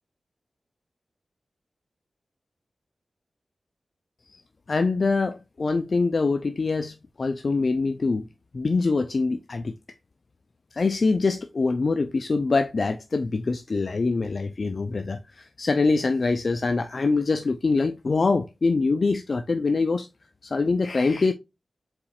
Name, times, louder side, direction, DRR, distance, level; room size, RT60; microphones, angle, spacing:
voice 1, 4.7-8.3 8.5-9.7 10.7-20.1 20.4-21.3, left 3 dB, 60° left, 0.4 m, -24 dB
4.2 x 4.0 x 2.4 m
cardioid pair, 60°, 0 cm